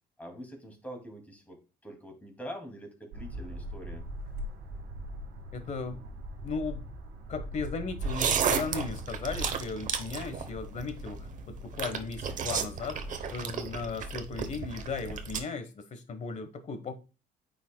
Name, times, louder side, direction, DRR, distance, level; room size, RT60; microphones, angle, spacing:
voice 1, 0.2-4.0, equal, 10° left, 2.4 m, -44 dB
sound 1, 3.1-9.6, right 1 dB, 75° right, 1.7 m, -40 dB
voice 2, 5.5-6.0 6.4-6.9 7.3-13.0 13.3-16.9, left 4 dB, 45° left, 1.2 m, -36 dB
sound 2, 8.0-15.4, right 6 dB, 50° right, 0.9 m, -34 dB
9.0 x 5.3 x 2.2 m
cardioid pair, 110°, 17 cm